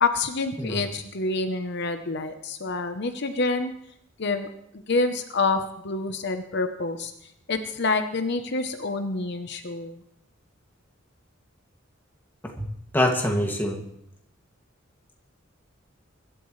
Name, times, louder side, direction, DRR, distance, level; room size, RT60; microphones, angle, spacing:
voice 1, 0.0-3.7 4.2-4.5 4.9-7.1 7.5-10.0, left 3 dB, 60° left, 7 dB, 0.9 m, -27 dB
voice 2, 0.6-0.9 12.6-12.7 12.9-13.8, left 1 dB, 10° left, 0 dB, 2.2 m, -24 dB
23.5 x 12.5 x 3.2 m, 0.77 s
head